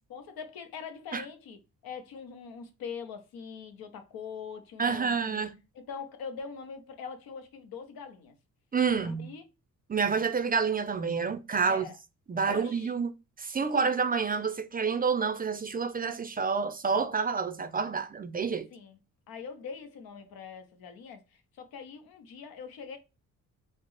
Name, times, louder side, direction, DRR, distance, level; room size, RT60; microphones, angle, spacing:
voice 1, 0.1-1.6 1.8-5.4 5.7-8.3 9.0-9.5 11.6-12.0 12.4-12.9 13.7-13.9 18.7-19.0 19.3-23.0, left 6 dB, 85° left, 0.9 m, -42 dB
voice 2, 4.8-5.5 8.7-9.3 9.9-11.9 12.3-13.1 13.4-18.7, right 5 dB, 25° right, 0.4 m, -28 dB
4.1 x 2.1 x 3.2 m
cardioid pair, 105°, 35 cm